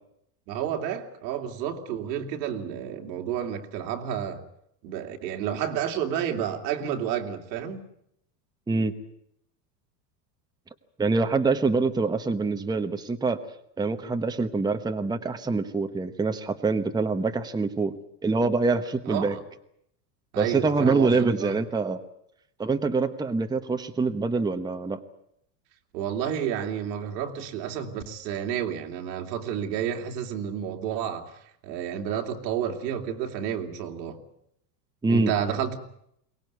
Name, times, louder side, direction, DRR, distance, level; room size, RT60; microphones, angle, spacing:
voice 1, 0.5-4.4 4.8-7.9 19.1-19.4 20.3-21.6 25.9-34.2 35.1-35.8, right 9 dB, 85° right, 3.1 m, -30 dB
voice 2, 11.0-13.4 13.8-17.9 18.2-19.4 20.4-22.0 22.6-25.0 35.0-35.3, right 3 dB, 10° right, 1.1 m, -25 dB
23.0 x 19.0 x 9.4 m
supercardioid pair, 135°, 49 cm